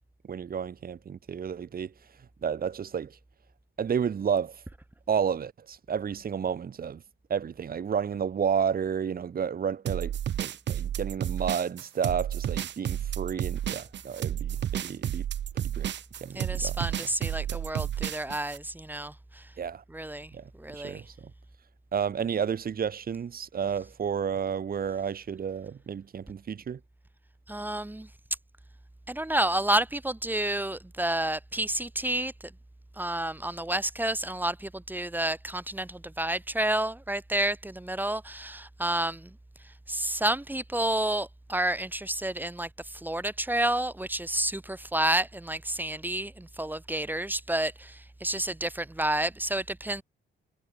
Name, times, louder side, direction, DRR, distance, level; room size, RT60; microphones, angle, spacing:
voice 1, 0.3-3.2 3.8-4.6 5.1-7.0 7.3-10.1 10.4-15.2 15.6-15.9 16.2-16.9 17.5-17.6 19.6-19.8 20.3-21.3 21.9-26.8, right 7 dB, 50° right, 2.8 m, -31 dB
sound 1, 9.9-18.6, right 10 dB, 65° right, 1.9 m, -31 dB
voice 2, 16.3-19.4 19.9-20.3 20.6-21.0 27.5-28.1 29.1-32.5 33.0-39.3 39.9-50.0, right 1 dB, 10° right, 2.3 m, -30 dB
cardioid pair, 90°, 20 cm